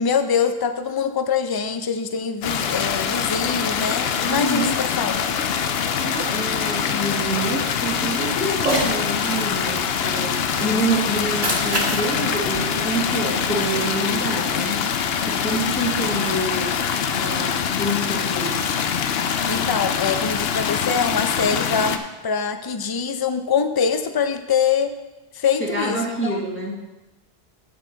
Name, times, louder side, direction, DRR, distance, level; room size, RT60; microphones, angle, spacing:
voice 1, 0.0-5.1 19.5-25.0 25.3-26.4, left 6 dB, 35° left, 9 dB, 0.4 m, -24 dB
sound 1, 2.4-22.0, left 7 dB, 80° left, 0.8 m, -24 dB
voice 2, 4.3-4.9 6.0-14.8 15.2-16.8 17.1-18.6 25.6-26.8, right 1 dB, 10° left, -2 dB, 1.5 m, -27 dB
Cat, 8.5-9.0 11.2-13.5, right 2 dB, 40° right, 1.6 m, -28 dB
8.8 x 8.3 x 3.9 m, 1.1 s
omnidirectional pair, 1.0 m